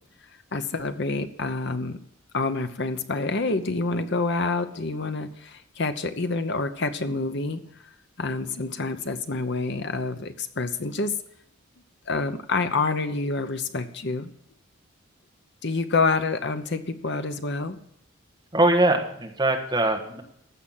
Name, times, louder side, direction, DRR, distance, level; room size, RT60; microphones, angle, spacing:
voice 1, 0.5-2.0 2.3-7.6 8.2-11.2 12.1-14.3 15.6-17.8, left 3 dB, 55° left, 9 dB, 0.9 m, -27 dB
voice 2, 18.5-20.2, right 1 dB, 20° right, 2 dB, 1.4 m, -22 dB
15.0 x 5.8 x 7.3 m, 0.72 s
head